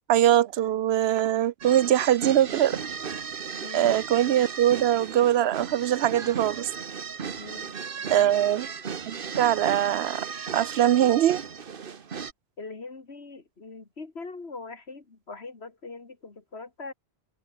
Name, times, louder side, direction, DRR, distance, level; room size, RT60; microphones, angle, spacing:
voice 1, 0.1-2.8 3.7-6.7 8.1-8.7 9.1-10.3 10.5-11.4, right 11 dB, 75° right, 0.8 m, -22 dB
sound 1, 1.6-12.3, right 6 dB, 55° right, 1.3 m, -36 dB
voice 2, 3.6-3.9 7.4-7.7 8.1-8.3 12.6-16.9, left 3 dB, 75° left, 2.7 m, -41 dB
omnidirectional pair, 1.1 m